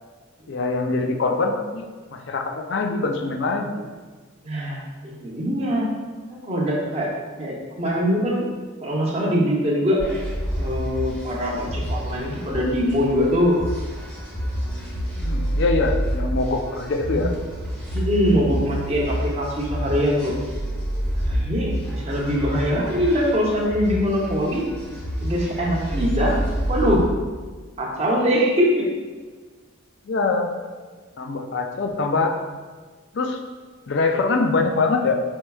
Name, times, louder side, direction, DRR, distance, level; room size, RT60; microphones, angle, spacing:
voice 1, 0.5-3.9 15.1-17.3 30.1-30.5 31.2-32.4 33.1-33.4 33.9-35.1, left 3 dB, 55° left, 4 dB, 0.4 m, -23 dB
voice 2, 4.4-5.9 6.3-7.1 7.4-8.4 8.8-10.0 10.5-13.6 17.1-17.2 17.9-20.3 21.2-24.6 25.2-26.3 26.7-27.0 27.8-28.8, equal, 30° right, -3 dB, 0.7 m, -22 dB
sound 1, 10.0-27.0, equal, 10° left, 0.8 m, -28 dB
4.5 x 4.4 x 2.3 m, 1.4 s
head